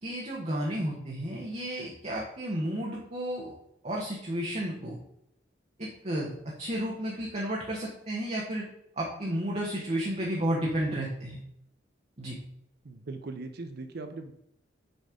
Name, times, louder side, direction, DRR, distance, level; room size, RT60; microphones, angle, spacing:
voice 1, 0.0-3.5 3.8-5.0 5.8-6.3 6.6-8.6 9.0-11.4 12.2-12.4, right 1 dB, 40° right, -3 dB, 1.2 m, -32 dB
voice 2, 12.8-14.3, right 3 dB, 60° right, 7 dB, 0.6 m, -39 dB
6.5 x 4.2 x 5.0 m, 0.77 s
head